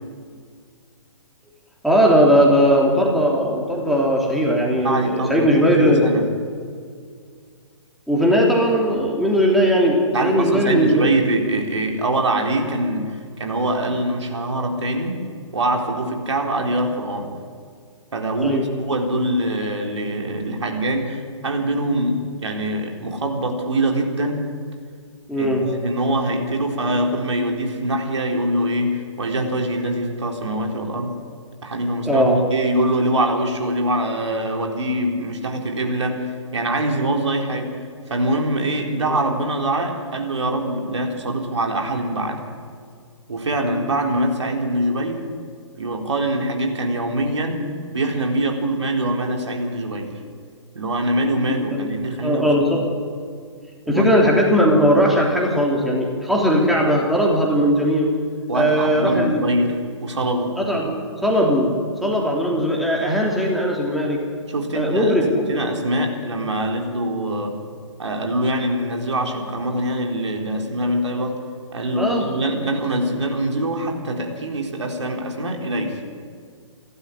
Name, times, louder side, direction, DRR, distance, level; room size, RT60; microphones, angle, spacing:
voice 1, 1.8-6.1 8.1-11.1 18.4-18.7 25.3-25.6 32.0-32.4 39.0-39.1 51.7-51.9 52.2-52.8 53.9-58.1 58.5-59.4 60.6-60.9 61.2-61.7 62.0-64.2 64.7-65.6 72.0-72.3, equal, ahead, -2 dB, 3.1 m, -18 dB
voice 2, 4.8-6.3 10.1-15.2 15.5-17.3 18.1-24.4 25.3-31.2 31.6-37.8 38.1-42.4 43.3-45.2 45.8-47.7 47.9-50.1 50.7-52.7 53.9-54.0 58.5-60.5 64.5-67.6 68.0-71.4 71.7-76.0, right 1 dB, 65° right, 2 dB, 4.0 m, -24 dB
28.5 x 12.5 x 9.9 m, 2.1 s
figure-of-eight pair, 130°, 16 cm